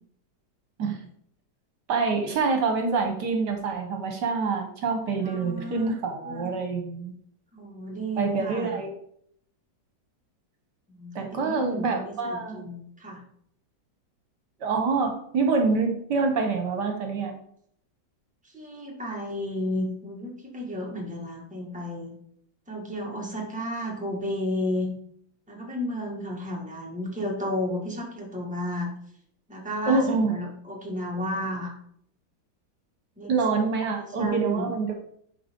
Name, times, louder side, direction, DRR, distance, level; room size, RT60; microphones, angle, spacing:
voice 1, 1.9-7.1 8.2-8.9 11.1-12.6 14.6-17.4 29.9-30.3 33.3-34.9, right 4 dB, 65° right, 3 dB, 1.6 m, -26 dB
voice 2, 5.2-5.9 6.2-6.5 7.5-8.7 10.9-13.2 18.5-22.1 22.7-24.9 25.5-28.9 29.5-31.7 33.2-33.3 34.0-34.7, left 1 dB, 5° right, -2 dB, 1.7 m, -32 dB
10.0 x 4.9 x 3.7 m, 0.67 s
omnidirectional pair, 2.0 m